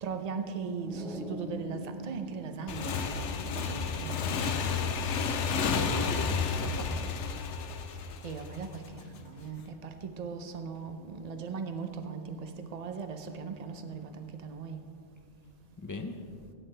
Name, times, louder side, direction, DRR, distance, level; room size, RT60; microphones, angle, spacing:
voice 1, 0.0-4.2 8.2-14.8, right 5 dB, 40° right, 7 dB, 0.7 m, -39 dB
sound 1, 0.9-3.7, right 1 dB, 5° left, 1.6 m, -42 dB
Motorcycle / Engine, 2.7-9.0, left 5 dB, 75° left, 1.0 m, -31 dB
voice 2, 5.5-7.1 15.8-16.2, left 2 dB, 20° left, 5 dB, 0.5 m, -38 dB
16.5 x 9.4 x 3.3 m, 2.4 s
omnidirectional pair, 1.2 m